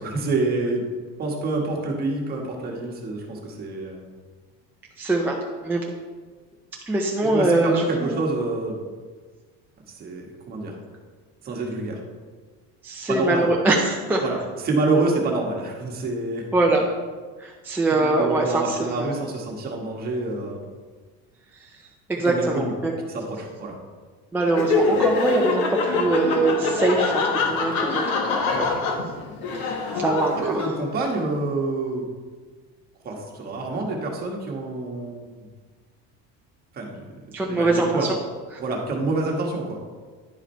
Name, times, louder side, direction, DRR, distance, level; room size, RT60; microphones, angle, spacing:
voice 1, 0.0-0.9 1.2-4.1 7.2-8.8 10.0-10.7 11.4-12.0 13.1-13.5 14.2-16.4 17.9-20.6 22.2-22.7 23.1-23.8 30.4-32.1 33.0-35.3 36.7-37.0 37.5-38.1 38.6-39.8, right 3 dB, 30° right, 0 dB, 1.3 m, -27 dB
voice 2, 5.0-5.8 6.9-8.2 12.8-14.4 16.5-16.9 17.4-19.1 21.5-21.8 22.1-22.9 24.3-28.7 29.5-30.7 37.3-38.2 38.5-38.6, right 2 dB, 5° right, -2 dB, 0.4 m, -23 dB
Laughter, 24.5-31.1, left 4 dB, 60° left, 1.1 m, -24 dB
10.5 x 5.0 x 4.4 m, 1.5 s
cardioid pair, 170°, 33 cm